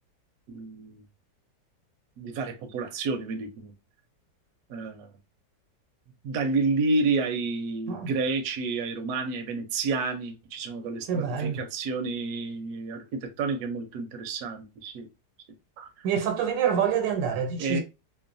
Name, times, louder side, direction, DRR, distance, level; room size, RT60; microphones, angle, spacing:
voice 1, 0.5-1.0 2.2-3.7 4.7-5.1 6.2-15.1 15.8-15.9 17.6-17.8, right 3 dB, 70° right, 1.0 m, -30 dB
voice 2, 11.1-11.6 16.0-17.8, right 7 dB, 85° right, 1.4 m, -26 dB
3.1 x 2.1 x 2.4 m
omnidirectional pair, 1.9 m